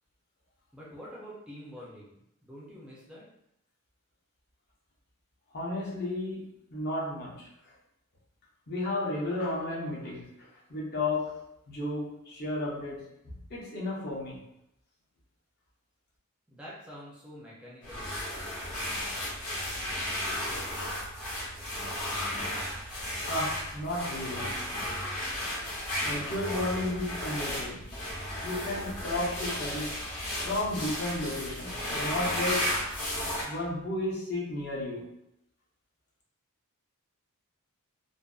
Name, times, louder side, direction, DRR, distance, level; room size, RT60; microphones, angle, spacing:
voice 1, 0.7-2.1 2.4-3.3 16.5-18.3, equal, 5° right, -7 dB, 0.4 m, -46 dB
voice 2, 5.5-7.7 8.7-11.4 11.7-14.4 23.3-24.6 26.0-28.0 28.4-30.2 30.4-35.1, left 2 dB, 45° left, -5 dB, 0.7 m, -33 dB
sound 1, 17.8-33.4, left 1 dB, 70° left, 0.9 m, -34 dB
2.5 x 2.2 x 2.3 m, 0.80 s
head